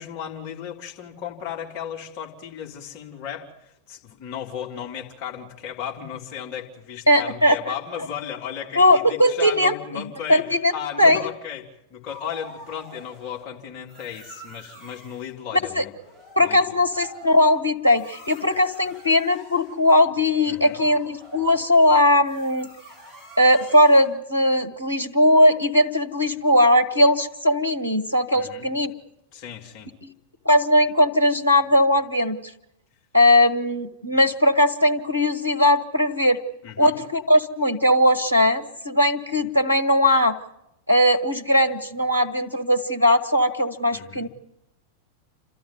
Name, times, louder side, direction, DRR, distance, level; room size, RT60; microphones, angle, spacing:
voice 1, 0.0-10.4 10.7-15.9 16.4-16.8 20.5-20.8 28.3-28.7 29.3-29.9 36.6-37.0 43.9-44.3, left 9 dB, 40° left, 0 dB, 3.3 m, -35 dB
voice 2, 7.1-7.6 8.8-10.0 10.3-10.7 11.0-11.2 15.7-15.8 16.3-22.7 23.4-28.9 30.0-30.1 30.4-32.4 33.1-36.4 36.8-40.4 40.9-44.3, left 1 dB, 85° left, 7 dB, 1.5 m, -19 dB
sound 1, 12.1-13.5 13.9-15.3 15.8-24.0, left 1 dB, 5° right, 6.9 m, -45 dB
29.5 x 13.0 x 9.3 m, 0.85 s
figure-of-eight pair, 90°, 0 cm